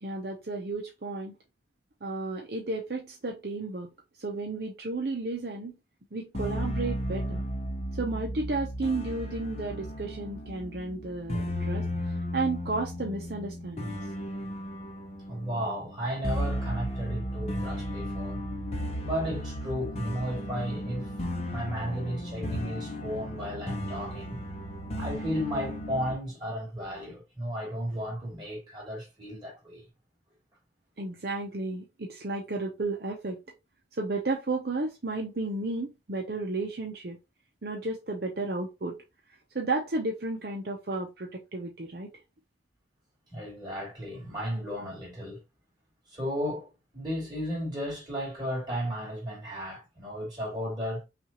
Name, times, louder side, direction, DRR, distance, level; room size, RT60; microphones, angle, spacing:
voice 1, 0.0-1.3 2.0-3.9 4.2-5.7 6.1-7.4 8.0-11.9 12.3-14.0 31.0-33.4 33.9-37.2 37.6-39.0 39.5-42.1, right 3 dB, 60° right, 0.7 m, -33 dB
sound 1, 6.3-26.1, equal, 35° left, 0.7 m, -35 dB
voice 2, 15.3-18.4 19.0-24.4 25.0-29.8 43.3-45.4 46.1-51.0, equal, 25° right, 2.9 m, -34 dB
5.9 x 2.5 x 2.9 m
head